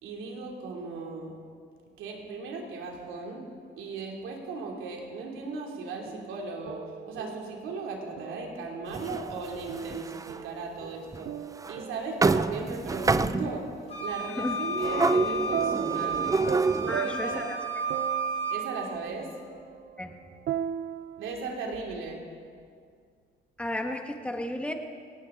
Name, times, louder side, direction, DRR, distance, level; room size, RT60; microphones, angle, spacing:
voice 1, 0.0-1.3 2.0-3.4 3.8-11.3 11.7-13.7 14.0-16.5 16.8-17.5 18.5-19.3 21.2-22.3, right 3 dB, 90° right, 0 dB, 2.8 m, -37 dB
sound 1, 6.1-8.8 9.7-13.1 15.5-21.6, right 9 dB, 65° right, 0.5 m, -38 dB
sound 2, 8.9-10.4 11.1-11.2 11.6-11.8 12.2-13.7 14.7-17.0, right 3 dB, 15° right, 0.4 m, -27 dB
Wind instrument woodwind instrument, 13.9-18.6, right 3 dB, 30° left, 2.6 m, -32 dB
voice 2, 14.3-14.6 16.9-17.6 20.0-20.1 23.6-24.7, left 1 dB, 5° left, 4 dB, 1.6 m, -33 dB
18.5 x 17.5 x 3.8 m, 2.1 s
cardioid pair, 90°, 20 cm